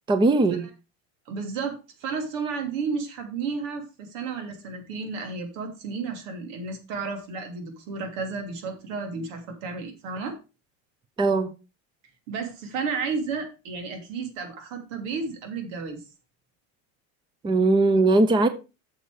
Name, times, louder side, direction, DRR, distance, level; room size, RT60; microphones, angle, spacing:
voice 1, 0.1-0.7 11.2-11.5 17.4-18.5, right 2 dB, 15° right, 0.6 m, -20 dB
voice 2, 1.3-10.4 12.3-16.0, right 4 dB, 90° right, 3.0 m, -32 dB
8.6 x 6.7 x 4.8 m
cardioid pair, 155°, 37 cm